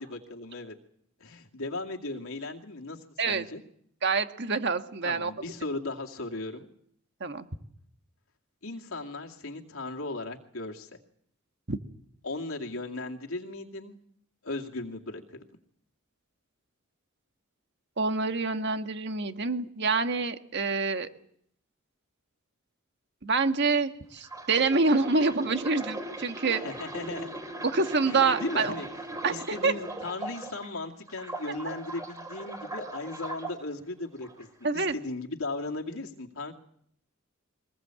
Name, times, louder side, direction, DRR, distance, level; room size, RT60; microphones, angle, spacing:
voice 1, 0.1-0.7 1.2-3.0 3.3-3.6 5.0-6.7 8.6-10.9 12.2-14.0 14.4-15.4 26.5-27.4 28.0-28.9 29.3-34.5 34.7-36.5, left 2 dB, 75° left, 1 dB, 2.3 m, -37 dB
voice 2, 4.0-5.3 7.2-7.5 11.7-11.8 18.0-21.1 23.2-26.6 27.6-28.7 29.2-29.7 34.6-35.0, right 4 dB, 55° right, 7 dB, 1.6 m, -26 dB
sound 1, 24.2-30.7 31.1-33.5 34.2-34.4, right 1 dB, 15° right, 3.6 m, -39 dB
23.0 x 20.5 x 7.7 m, 0.67 s
head